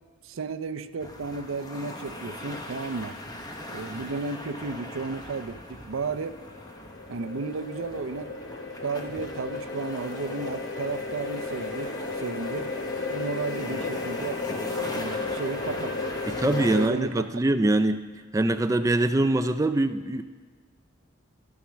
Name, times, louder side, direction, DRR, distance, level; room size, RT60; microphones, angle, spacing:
voice 1, 0.2-3.2 3.7-6.4 7.1-8.3 8.8-12.8 13.1-14.4 14.9-16.0 16.4-17.4, right 4 dB, 85° right, 10 dB, 0.5 m, -33 dB
sound 1, 1.0-16.9, left 1 dB, 20° left, 0.9 m, -40 dB
sound 2, 6.2-16.9, left 3 dB, 60° left, 0.6 m, -34 dB
voice 2, 16.3-18.0 18.3-20.2, right 2 dB, 15° right, 10 dB, 0.3 m, -23 dB
12.5 x 7.2 x 6.2 m, 1.5 s
head